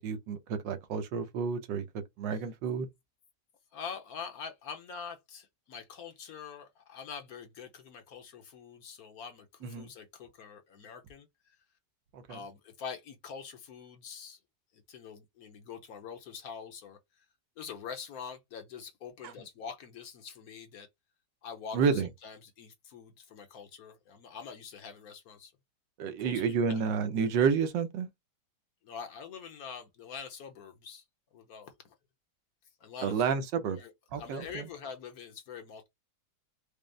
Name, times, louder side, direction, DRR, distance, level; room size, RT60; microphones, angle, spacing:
voice 1, 0.0-1.8 2.2-2.9 9.6-9.9 12.1-12.4 21.7-22.1 26.0-28.1 33.0-33.8 34.1-34.7, right 6 dB, 90° right, 1.4 m, -30 dB
voice 2, 3.7-11.6 12.3-14.4 14.7-17.3 17.6-20.9 21.4-25.5 26.2-26.8 28.8-31.0 31.3-31.9 32.8-33.2 33.7-35.9, left 6 dB, 60° left, 1.1 m, -45 dB
5.1 x 2.0 x 3.3 m
omnidirectional pair, 1.9 m